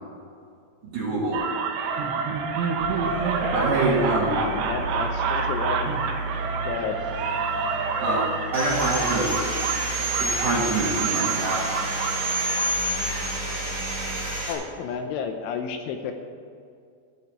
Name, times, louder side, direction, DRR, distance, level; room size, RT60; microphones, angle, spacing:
voice 1, 0.8-1.4 3.5-4.4 8.0-8.3 8.5-9.4 10.2-11.6, right 2 dB, 55° right, -5 dB, 2.3 m, -25 dB
sound 1, 1.3-13.3, right 5 dB, 75° right, 3.0 m, -29 dB
sound 2, 2.8-14.4, right 2 dB, 60° left, 2.7 m, -35 dB
voice 2, 4.3-5.9 6.6-7.0 14.5-16.1, left 6 dB, 80° left, 5 dB, 3.0 m, -31 dB
Sawing, 8.5-14.5, right 2 dB, 5° right, 1.9 m, -28 dB
13.5 x 5.7 x 8.7 m, 2.3 s
omnidirectional pair, 5.9 m